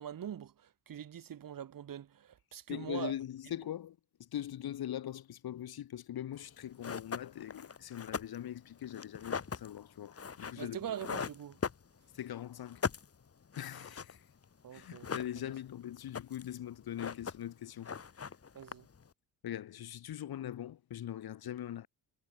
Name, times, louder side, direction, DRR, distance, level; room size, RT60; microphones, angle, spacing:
voice 1, 0.0-3.1 10.6-11.6 14.6-15.1 18.5-18.9, right 9 dB, 55° right, 5.9 m, -43 dB
voice 2, 2.7-10.8 12.1-12.8 13.6-14.3 14.7-17.9 19.4-21.9, left 11 dB, 65° left, 7.9 m, -41 dB
sound 1, 6.4-6.5 6.8-12.3 12.6-14.2 14.4-14.5 14.8-15.7 16.0-16.6 16.8-17.6 17.8-19.1, left 6 dB, 35° left, 7.0 m, -40 dB
cardioid pair, 110°, 39 cm